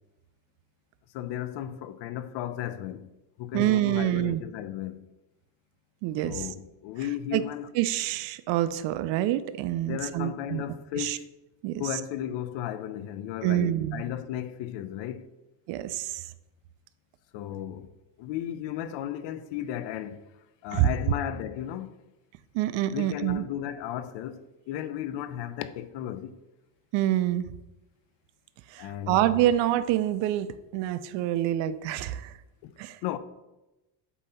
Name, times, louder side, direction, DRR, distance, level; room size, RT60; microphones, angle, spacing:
voice 1, 1.1-5.1 6.2-7.7 9.8-11.3 11.8-15.3 17.3-17.9 18.2-20.3 20.6-22.0 22.9-26.4 28.8-29.2 32.6-32.7 33.0-33.2, left 11 dB, 80° left, 0.6 m, -35 dB
voice 2, 3.5-4.4 6.0-6.4 7.3-7.4 7.8-10.6 11.0-11.2 11.6-11.8 13.4-14.0 15.7-16.1 20.7-20.9 22.5-23.4 26.9-27.5 28.7-32.3 32.8-33.0, right 13 dB, 85° right, 0.6 m, -26 dB
8.3 x 2.8 x 5.5 m
cardioid pair, 155°, 43 cm